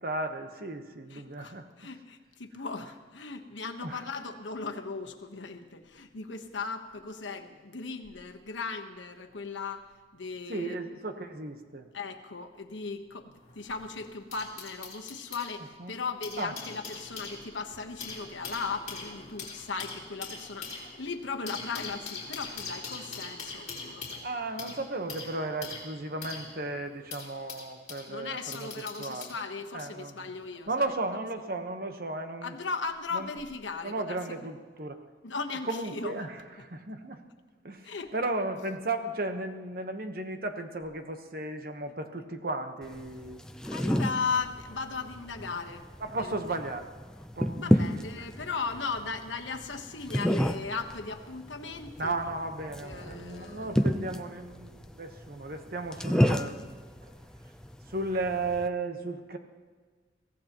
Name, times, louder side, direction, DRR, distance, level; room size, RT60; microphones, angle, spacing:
voice 1, 0.0-1.7 3.8-4.0 10.5-11.9 15.8-15.9 16.4-16.5 24.2-28.7 29.0-29.3 29.7-30.3 30.7-32.5 33.1-33.3 33.8-35.0 35.7-37.2 37.6-43.4 46.0-46.9 47.4-47.7 48.2-48.3 52.0-56.8 57.9-59.4, right 2 dB, 50° right, 6 dB, 1.2 m, -35 dB
voice 2, 1.1-9.9 10.1-10.8 11.9-24.2 28.1-30.9 32.4-34.5 35.2-36.3 36.6-36.7 37.8-38.1 43.7-46.4 47.6-52.1 52.8-53.9, left 4 dB, 85° left, 4 dB, 1.2 m, -37 dB
sound 1, 13.4-15.5 16.0-28.1 28.5-29.4 30.3-30.5, left 4 dB, 40° left, 4.0 m, -42 dB
sound 2, 42.8-58.7, equal, 5° left, 0.5 m, -31 dB
23.0 x 16.5 x 3.0 m, 1.4 s
head